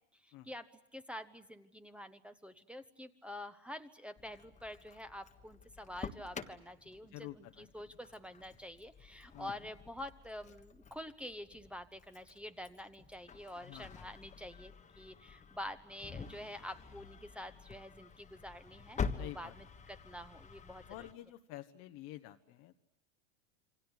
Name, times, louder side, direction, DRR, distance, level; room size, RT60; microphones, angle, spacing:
voice 1, 0.2-20.8, left 1 dB, 5° right, 6 dB, 1.1 m, -47 dB
Engine starting, 4.2-21.1, left 6 dB, 20° left, 1.5 m, -47 dB
voice 2, 7.0-7.9 9.3-9.6 13.6-14.0 19.2-19.6 20.9-22.7, left 15 dB, 50° left, 8 dB, 1.2 m, -49 dB
27.5 x 24.5 x 8.2 m, 0.83 s
hypercardioid pair, 105°, 35 cm